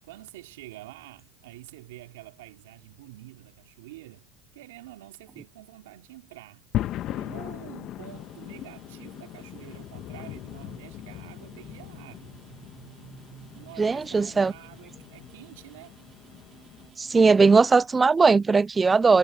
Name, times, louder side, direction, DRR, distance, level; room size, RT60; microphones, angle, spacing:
voice 1, 0.0-6.6 7.1-12.3 13.5-15.9, right 17 dB, 85° right, 3.4 m, -47 dB
sound 1, 6.7-16.9, left 13 dB, 50° left, 1.5 m, -38 dB
sound 2, 8.0-17.4, right 9 dB, 40° right, 2.8 m, -53 dB
voice 2, 13.8-14.5 17.0-19.2, right 4 dB, 20° right, 0.4 m, -19 dB
supercardioid pair, 100°, 0 cm